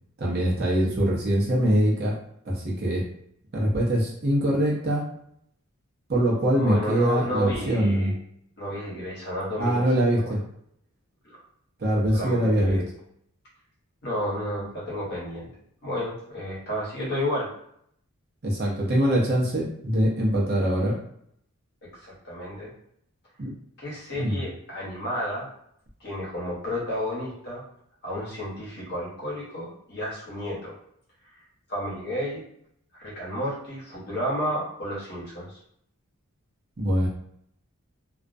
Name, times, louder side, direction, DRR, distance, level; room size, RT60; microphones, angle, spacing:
voice 1, 0.2-2.2 2.5-3.0 3.5-5.0 6.1-8.1 9.6-10.4 11.8-12.8 18.4-21.0 23.4-23.5 24.2-24.4 36.8-37.1, right 1 dB, 45° right, -3 dB, 0.6 m, -23 dB
voice 2, 6.6-8.1 8.6-9.8 10.2-10.4 12.1-12.8 14.0-15.5 15.8-17.5 22.0-22.7 23.8-25.5 26.0-27.6 28.0-30.7 31.7-32.4 33.0-35.6, left 1 dB, 50° left, -6 dB, 0.9 m, -31 dB
2.3 x 2.1 x 2.5 m, 0.71 s
head